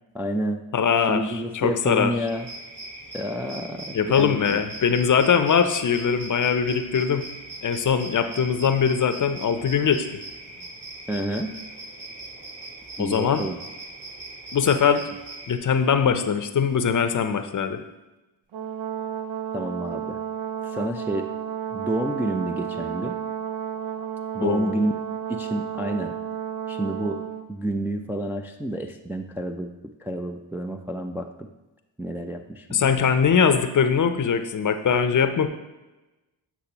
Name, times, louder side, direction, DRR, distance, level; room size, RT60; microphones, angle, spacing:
voice 1, 0.1-0.6 1.1-2.5 3.1-4.6 11.1-11.6 13.0-13.6 19.5-20.2 20.6-21.3 21.7-23.2 24.3-24.9 25.3-26.2 26.7-27.2 27.5-29.7 30.0-31.5 32.0-33.0, right 1 dB, 5° right, 3 dB, 0.4 m, -29 dB
voice 2, 0.7-2.3 3.9-7.3 7.6-10.2 13.0-13.5 14.5-15.1 15.5-17.8 24.4-24.8 32.7-35.5, left 6 dB, 40° left, 9 dB, 0.6 m, -22 dB
sound 1, 2.3-15.6, right 2 dB, 55° right, 1.5 m, -40 dB
Brass instrument, 18.5-27.5, right 9 dB, 75° right, 0.7 m, -32 dB
8.2 x 5.9 x 2.9 m, 1.1 s
supercardioid pair, 55°, 48 cm